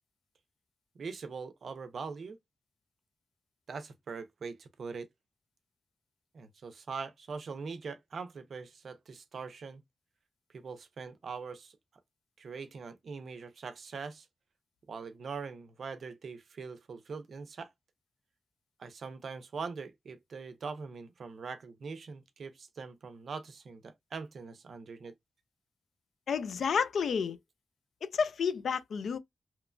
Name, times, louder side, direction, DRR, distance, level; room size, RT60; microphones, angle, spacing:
voice 1, 1.0-2.4 3.7-5.1 6.3-9.8 10.5-11.8 12.4-14.3 14.9-17.7 18.8-25.1, right 5 dB, 60° right, 0.5 m, -42 dB
voice 2, 26.3-27.4 28.0-29.2, left 6 dB, 85° left, 0.3 m, -30 dB
2.9 x 2.2 x 2.4 m
wide cardioid pair, 155°, 0 cm